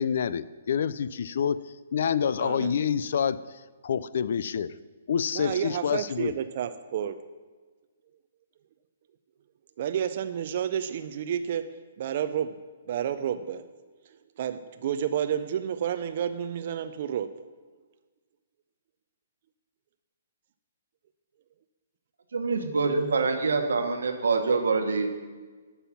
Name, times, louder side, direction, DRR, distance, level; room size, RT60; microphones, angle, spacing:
voice 1, 0.0-1.6 1.9-3.4 3.8-4.7 5.1-6.3, left 7 dB, 60° left, 16 dB, 0.3 m, -27 dB
voice 2, 2.4-2.8 5.3-7.2 9.8-13.7 14.4-17.4, right 9 dB, 45° right, 10 dB, 0.4 m, -30 dB
voice 3, 22.3-25.1, right 4 dB, 85° right, 5 dB, 1.1 m, -25 dB
8.3 x 5.5 x 5.7 m, 1.4 s
hypercardioid pair, 160°, 0 cm